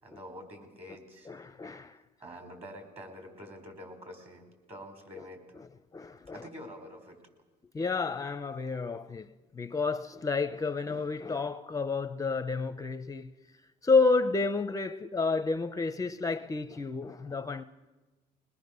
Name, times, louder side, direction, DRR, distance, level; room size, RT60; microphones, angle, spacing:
voice 1, 0.0-1.3 2.2-5.6 6.3-7.2, equal, 35° right, 4.9 m, -46 dB
voice 2, 1.3-2.0 5.9-6.4 7.7-9.3 9.5-13.3 13.8-17.6, left 4 dB, 20° left, 0.6 m, -30 dB
22.0 x 20.0 x 6.7 m
cardioid pair, 110°, 17 cm